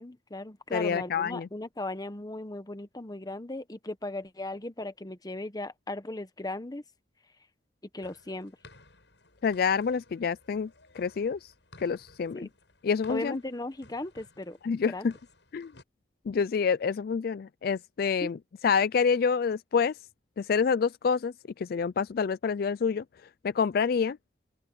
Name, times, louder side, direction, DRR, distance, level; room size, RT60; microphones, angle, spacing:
voice 1, 0.0-6.8 7.9-8.6 12.3-12.5 13.1-14.6 14.8-15.1 18.2-18.3, left 2 dB, 20° left, 1.0 m, -37 dB
voice 2, 0.7-1.5 9.4-11.5 11.8-12.5 12.8-13.4 14.6-15.1 15.5-15.7 16.3-18.4 18.6-20.0 20.4-24.2, left 6 dB, 55° left, 0.4 m, -27 dB
sound 1, 8.0-15.8, left 2 dB, 90° left, 6.8 m, -57 dB
open air
head